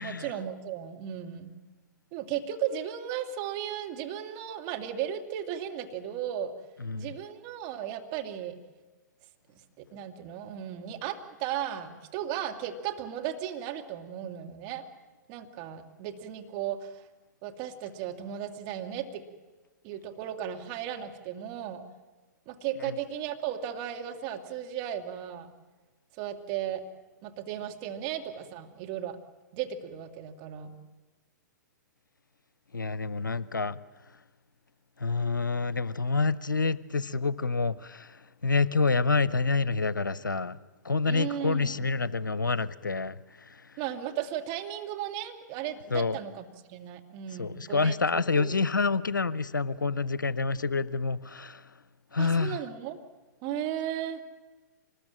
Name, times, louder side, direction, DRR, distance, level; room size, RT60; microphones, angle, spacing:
voice 1, 0.0-1.5 2.1-6.5 6.9-8.6 9.5-14.8 15.3-17.1 17.4-19.2 19.8-21.8 22.5-25.5 26.1-26.8 27.2-29.2 29.5-30.8 41.1-41.9 43.8-48.5 52.2-53.0 53.4-54.2, right 10 dB, 40° right, 2.1 m, -35 dB
voice 2, 32.7-33.8 35.0-40.6 40.8-43.6 45.9-46.2 47.4-51.6 52.1-52.6, left 4 dB, 90° left, 0.7 m, -28 dB
25.0 x 20.5 x 7.5 m
figure-of-eight pair, 110°, 10 cm